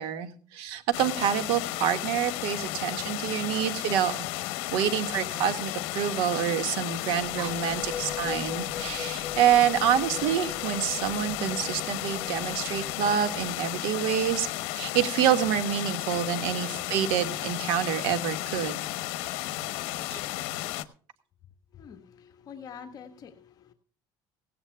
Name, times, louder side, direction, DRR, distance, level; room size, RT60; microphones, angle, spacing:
voice 1, 0.0-4.2 4.7-14.5 14.7-18.8 20.1-20.2, right 9 dB, 80° right, 9 dB, 1.8 m, -27 dB
sound 1, 0.9-20.8, left 16 dB, 85° left, 0.9 m, -33 dB
sound 2, 7.1-14.6, left 6 dB, 15° left, 1.5 m, -42 dB
voice 2, 21.7-23.7, left 7 dB, 45° left, 5 dB, 1.6 m, -46 dB
17.5 x 17.0 x 2.3 m, 0.44 s
cardioid pair, 135°, 9 cm